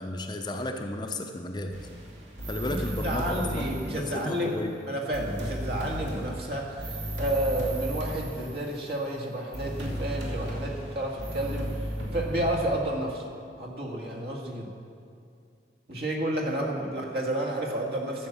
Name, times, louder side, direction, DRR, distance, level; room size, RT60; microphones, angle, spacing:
voice 1, 0.0-1.7 2.5-4.7, left 1 dB, 25° left, 4 dB, 0.7 m, -33 dB
sound 1, 1.7-4.4 5.1-9.1 9.5-12.8, equal, 90° right, 2.4 m, -35 dB
voice 2, 2.6-13.3 13.6-14.7 15.9-18.3, right 1 dB, 60° right, 0 dB, 2.0 m, -31 dB
13.0 x 7.4 x 7.2 m, 2.4 s
head